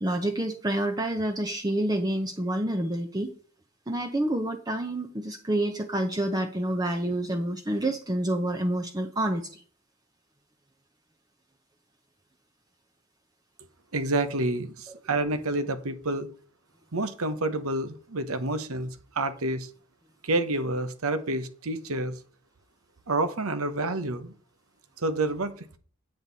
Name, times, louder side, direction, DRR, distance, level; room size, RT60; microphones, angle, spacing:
voice 1, 0.0-3.3 3.9-9.6, right 1 dB, 20° right, 0.7 m, -28 dB
voice 2, 13.9-16.3 16.9-19.7 20.2-22.2 23.1-24.3 25.0-25.8, right 2 dB, 85° right, 1.0 m, -29 dB
9.0 x 7.9 x 4.1 m
head